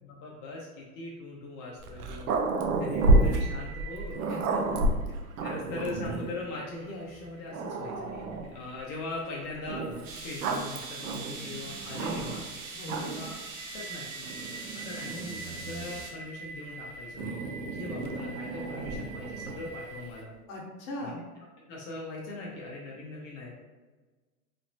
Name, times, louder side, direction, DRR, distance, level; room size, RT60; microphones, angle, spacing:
voice 1, 0.0-2.4 2.8-4.2 5.4-9.8 10.2-12.4 13.0-13.4 13.7-14.3 14.7-17.4 17.7-20.3 21.0-21.1 21.7-23.6, left 2 dB, 35° left, -3 dB, 0.5 m, -40 dB
Growling, 1.8-6.4 7.1-7.2 7.5-8.6 9.7-12.5 12.8-13.4 14.2-16.1 17.2-19.7, right 2 dB, 75° right, 0.6 m, -30 dB
sound 1, 2.9-20.2, right 4 dB, 50° right, 1.2 m, -47 dB
voice 2, 4.3-4.9 12.7-13.2 20.5-21.3, left 1 dB, 70° left, -2 dB, 1.0 m, -39 dB
metro subway Montreal fluorescent light neon hum buzz lowcut, 10.0-16.1, right 4 dB, 25° right, 0.3 m, -42 dB
3.1 x 2.0 x 2.6 m, 1.3 s
hypercardioid pair, 110°, 44 cm